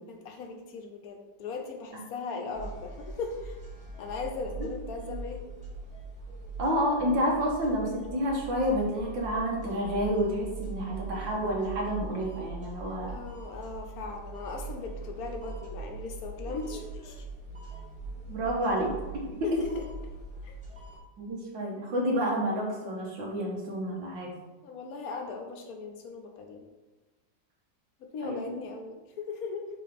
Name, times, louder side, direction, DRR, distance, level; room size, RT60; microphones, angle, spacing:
voice 1, 0.1-3.6 4.0-5.5 13.1-17.2 19.4-19.9 20.4-20.6 24.6-26.6 28.0-29.7, left 4 dB, 60° left, 3 dB, 1.2 m, -38 dB
sound 1, 2.5-21.0, right 3 dB, 5° right, 1.5 m, -41 dB
voice 2, 6.6-13.2 18.3-19.6 21.2-24.3 28.2-28.6, equal, 80° right, -2 dB, 2.1 m, -29 dB
5.9 x 3.4 x 5.2 m, 1.2 s
omnidirectional pair, 2.0 m